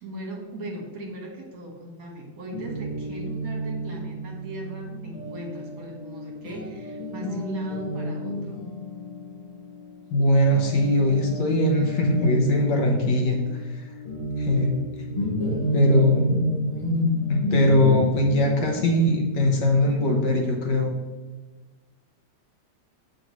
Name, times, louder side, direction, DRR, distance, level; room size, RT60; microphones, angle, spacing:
voice 1, 0.0-8.6, right 1 dB, 55° right, 0 dB, 1.6 m, -38 dB
Guitar, 2.5-10.2 10.5-20.9, equal, 30° left, 0.7 m, -30 dB
voice 2, 10.1-13.9 14.4-14.8 15.7-16.4 17.3-20.9, left 1 dB, 70° left, 1 dB, 1.6 m, -21 dB
7.4 x 5.3 x 3.1 m, 1.3 s
omnidirectional pair, 2.0 m